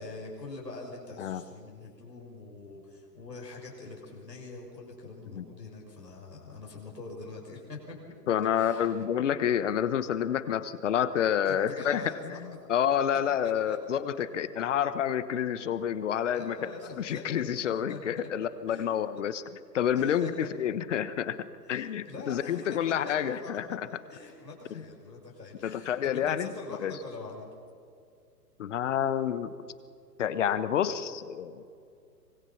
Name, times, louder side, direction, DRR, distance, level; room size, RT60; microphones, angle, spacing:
voice 1, 0.0-8.0 8.5-9.1 11.4-12.4 13.4-14.2 15.3-15.5 16.3-17.4 17.9-18.3 18.7-18.9 19.9-20.5 21.6-22.8 23.0-23.6 23.9-27.5, left 3 dB, 80° left, -2 dB, 6.4 m, -44 dB
voice 2, 8.3-16.7 17.0-21.4 21.7-23.9 24.7-24.8 25.6-26.5 26.8-26.9 28.6-29.5 30.2-31.6, left 9 dB, 45° left, 14 dB, 1.3 m, -29 dB
25.0 x 21.5 x 5.9 m, 2.4 s
figure-of-eight pair, 125°, 49 cm